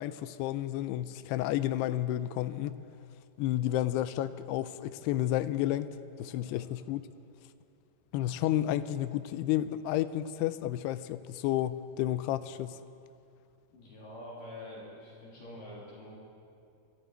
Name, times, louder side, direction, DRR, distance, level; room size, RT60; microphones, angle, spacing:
voice 1, 0.0-2.7 3.4-5.9 6.2-7.0 8.1-12.8, left 13 dB, 85° left, 14 dB, 2.6 m, -31 dB
voice 2, 13.7-16.1, left 1 dB, 55° left, -6 dB, 4.3 m, -46 dB
23.5 x 13.0 x 4.5 m, 2.5 s
omnidirectional pair, 4.7 m